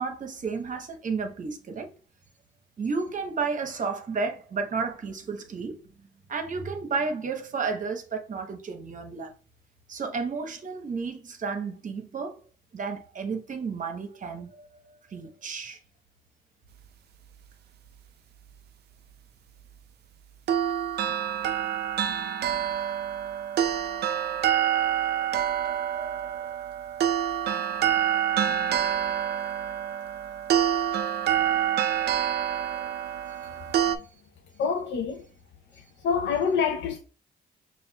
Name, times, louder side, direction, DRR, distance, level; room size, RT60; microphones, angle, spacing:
voice 1, 0.0-1.9 2.8-5.8 6.3-9.3 9.9-12.4 12.7-15.8 24.1-24.3 24.7-24.8 25.1-26.6 31.8-32.9, right 4 dB, 40° right, 0.9 m, -33 dB
sound 1, 20.5-34.0, right 10 dB, 55° right, 0.4 m, -27 dB
voice 2, 34.6-35.2 36.0-37.0, left 6 dB, 65° left, 0.6 m, -26 dB
5.5 x 2.5 x 2.3 m
cardioid pair, 90°, 20 cm